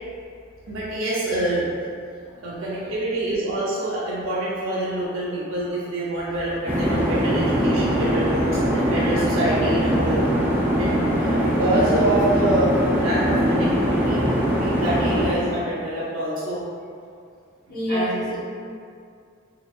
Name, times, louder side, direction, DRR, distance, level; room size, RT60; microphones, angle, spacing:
voice 1, 0.7-1.7 2.4-10.2 10.8-12.7 13.0-14.2 14.6-16.6 17.7-18.3, right 1 dB, 80° right, -7 dB, 0.7 m, -26 dB
sound 1, 6.7-15.3, equal, 10° right, 0.3 m, -21 dB
voice 2, 17.7-18.6, equal, 45° left, -8 dB, 0.7 m, -28 dB
3.8 x 2.9 x 2.4 m, 2.3 s
head